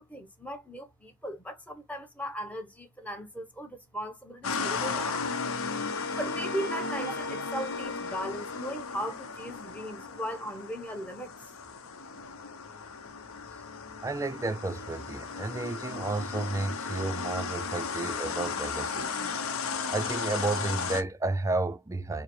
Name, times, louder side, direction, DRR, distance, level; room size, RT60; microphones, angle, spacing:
voice 1, 0.0-5.3 6.2-11.3, equal, 5° left, 0.9 m, -38 dB
sound 1, 4.4-21.0, left 5 dB, 85° left, 0.7 m, -35 dB
Wind instrument woodwind instrument, 4.8-9.2, left 2 dB, 55° left, 0.8 m, -40 dB
voice 2, 14.0-19.1 19.9-22.2, right 2 dB, 15° right, 0.3 m, -32 dB
4.6 x 2.0 x 3.1 m
head